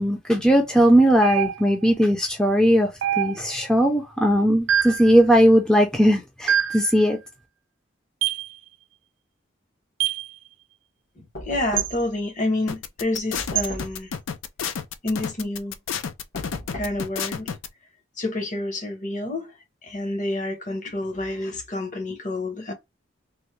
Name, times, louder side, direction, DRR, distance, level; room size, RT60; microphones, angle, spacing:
voice 1, 0.0-2.9 3.2-7.2, equal, 5° left, 0.4 m, -18 dB
sound 1, 1.2-1.9 3.0-3.7 4.7-5.1 6.5-6.9 8.2-8.5 10.0-10.3 11.8-11.9 13.5-13.7, right 10 dB, 80° right, 0.4 m, -24 dB
Knock, 11.3-12.2 13.3-14.1 16.3-17.1, equal, 65° left, 1.3 m, -37 dB
voice 2, 11.5-14.1 15.0-15.7 16.7-17.5 18.2-19.5 19.8-22.7, left 2 dB, 40° left, 0.8 m, -28 dB
sound 2, 12.7-17.7, left 7 dB, 85° left, 0.4 m, -30 dB
3.4 x 2.1 x 3.0 m
head